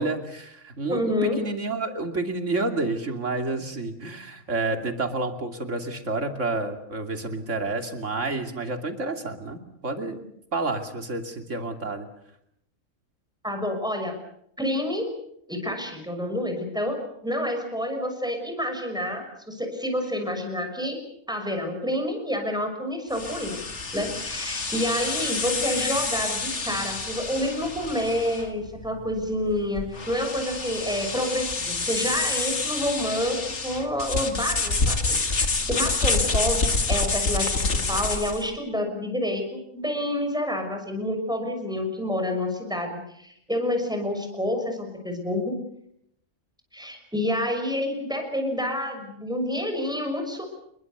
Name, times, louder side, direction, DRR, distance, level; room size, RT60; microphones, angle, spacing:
voice 1, 0.0-10.2 10.5-12.1, right 3 dB, 65° right, 6 dB, 3.1 m, -29 dB
voice 2, 0.9-1.4 13.4-14.2 14.6-15.1 15.5-21.0 21.3-23.6 23.9-45.5 46.7-50.5, left 1 dB, 5° right, 4 dB, 6.1 m, -28 dB
sound 1, 23.1-38.5, left 3 dB, 60° left, 2.5 m, -28 dB
29.0 x 21.5 x 6.9 m, 0.74 s
omnidirectional pair, 1.4 m